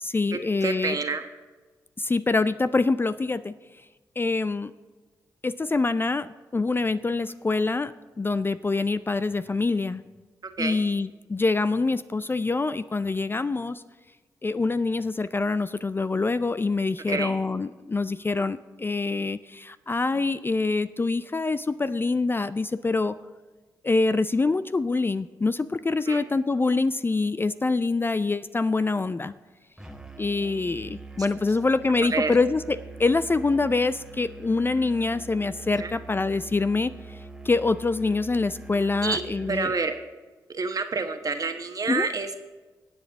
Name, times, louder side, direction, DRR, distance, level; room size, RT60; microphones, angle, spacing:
voice 1, 0.0-1.0 2.0-3.5 4.2-4.7 5.4-7.9 8.2-10.0 10.6-13.8 14.4-23.2 23.8-29.3 30.2-37.2 37.4-39.7 41.9-42.1, left 3 dB, 25° left, 14 dB, 0.4 m, -25 dB
voice 2, 0.6-1.2 10.6-10.8 17.1-17.3 26.1-26.2 32.1-32.3 35.8-35.9 39.0-39.2 39.5-39.9 40.5-42.4, right 4 dB, 45° right, 6 dB, 1.2 m, -28 dB
Musical instrument, 29.8-39.7, right 3 dB, 5° right, 1.4 m, -43 dB
20.0 x 7.8 x 3.6 m, 1.3 s
hypercardioid pair, 40°, 9 cm